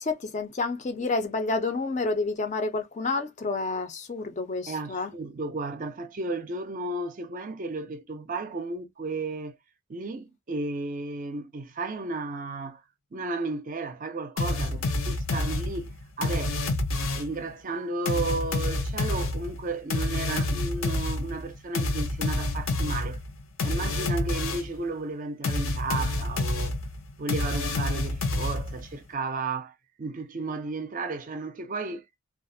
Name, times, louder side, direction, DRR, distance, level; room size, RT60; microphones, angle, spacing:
voice 1, 0.0-5.1, left 3 dB, 35° left, 0.4 m, -29 dB
voice 2, 4.7-9.6 9.9-12.8 13.1-16.8 17.1-23.2 23.6-26.8 27.2-32.0, right 3 dB, 40° right, 0.4 m, -33 dB
sound 1, 14.4-17.4 18.1-24.8 25.4-28.9, left 2 dB, 75° left, 0.6 m, -28 dB
2.3 x 2.0 x 2.6 m
head